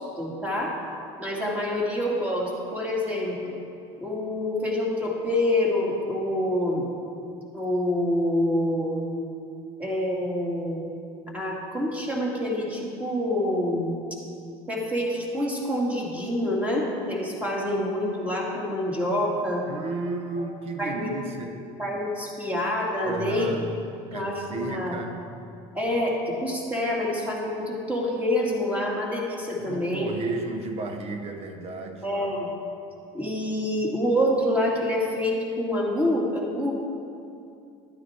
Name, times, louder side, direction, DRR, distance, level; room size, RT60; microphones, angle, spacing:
voice 1, 0.2-0.8 1.2-3.6 4.0-6.9 7.5-9.0 9.8-10.9 11.3-13.9 14.7-19.6 20.4-20.5 20.8-21.1 21.8-23.5 24.1-25.0 25.7-30.1 32.0-32.5 33.1-36.7, left 1 dB, 10° right, -3 dB, 2.5 m, -27 dB
voice 2, 19.7-21.6 23.0-23.7 24.1-25.2 29.7-32.1, right 3 dB, 50° right, 5 dB, 1.0 m, -33 dB
12.0 x 9.5 x 4.5 m, 2.6 s
cardioid pair, 115°, 13 cm